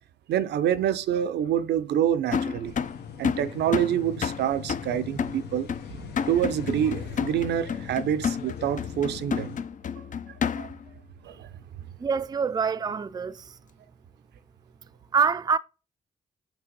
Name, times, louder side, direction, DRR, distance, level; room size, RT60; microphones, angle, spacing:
voice 1, 0.3-2.7 3.2-5.7 6.3-9.5 10.6-10.7 11.3-11.5, right 10 dB, 80° right, 0.6 m, -26 dB
sound 1, 2.3-10.9, left 7 dB, 50° left, 0.5 m, -31 dB
sound 2, 2.6-9.6, left 7 dB, 80° left, 1.1 m, -41 dB
voice 2, 12.0-13.5 15.1-15.6, right 6 dB, 25° right, 0.4 m, -25 dB
6.1 x 3.4 x 5.2 m
cardioid pair, 65°, 17 cm